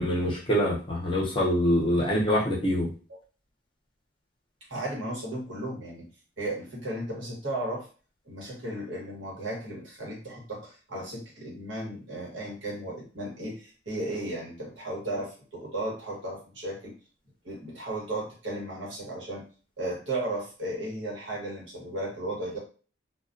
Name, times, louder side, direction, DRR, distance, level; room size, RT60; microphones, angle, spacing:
voice 1, 0.0-2.9, equal, 25° left, -3 dB, 0.7 m, -25 dB
voice 2, 4.7-6.1 6.4-7.9 8.3-16.9 17.4-19.4 19.8-22.6, right 1 dB, 75° right, -2 dB, 1.1 m, -35 dB
2.2 x 2.2 x 2.5 m, 0.38 s
head